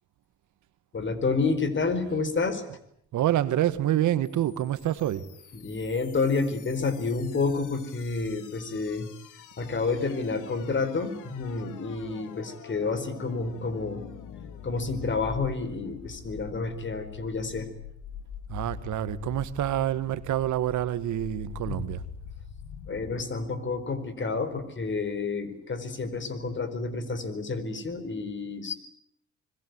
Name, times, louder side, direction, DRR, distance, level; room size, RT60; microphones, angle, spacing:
voice 1, 0.9-2.6 5.5-9.1 9.6-14.0 14.6-17.7 21.6-21.9 22.9-28.7, left 4 dB, 40° left, 4.6 m, -29 dB
voice 2, 3.1-5.3 18.5-22.0, right 12 dB, 75° right, 1.7 m, -27 dB
sound 1, 4.2-23.2, left 8 dB, 90° left, 2.8 m, -44 dB
26.0 x 22.0 x 9.5 m
cardioid pair, 90°, 30 cm